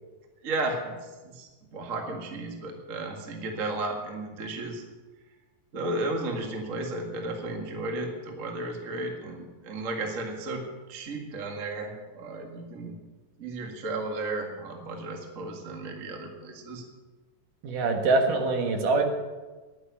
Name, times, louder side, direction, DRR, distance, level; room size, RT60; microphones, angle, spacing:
voice 1, 0.4-0.9 1.2-4.8 5.7-10.6 10.9-12.9 13.4-16.8, right 2 dB, 35° right, 2 dB, 1.4 m, -34 dB
voice 2, 17.6-19.0, right 3 dB, 70° right, 3 dB, 3.0 m, -24 dB
11.0 x 9.6 x 8.3 m, 1.2 s
omnidirectional pair, 4.0 m